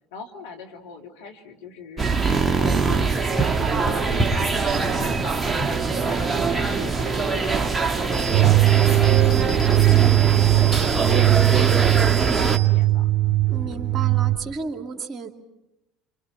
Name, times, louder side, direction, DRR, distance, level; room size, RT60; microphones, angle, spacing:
voice 1, 0.1-13.1 13.4-13.7, left 5 dB, 75° left, 2 dB, 3.0 m, -41 dB
sound 1, 2.0-12.6, right 4 dB, 20° right, 1.9 m, -23 dB
sound 2, 8.1-14.5, right 4 dB, 50° left, 5.8 m, -34 dB
sound 3, 8.3-14.4, right 19 dB, 60° right, 2.5 m, -19 dB
voice 2, 13.5-15.3, right 4 dB, 40° right, 5 dB, 2.7 m, -32 dB
29.0 x 26.0 x 5.9 m, 0.90 s
hypercardioid pair, 65°, 0 cm